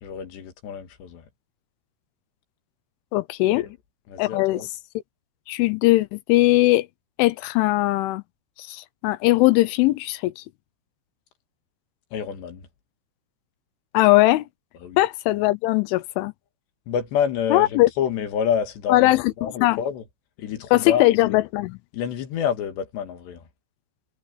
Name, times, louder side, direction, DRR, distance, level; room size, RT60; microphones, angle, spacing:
voice 1, 0.0-1.3 3.6-3.8 4.1-4.7 12.1-12.7 14.8-15.0 16.9-19.1 19.4-20.0 20.4-21.4 21.9-23.4, left 8 dB, 65° left, 4.0 m, -28 dB
voice 2, 3.1-3.6 4.2-4.6 5.5-6.9 7.2-8.2 8.6-10.4 13.9-14.4 15.0-16.3 17.5-17.9 18.9-19.8 20.7-21.8, left 18 dB, 85° left, 3.2 m, -20 dB
omnidirectional pair, 5.5 m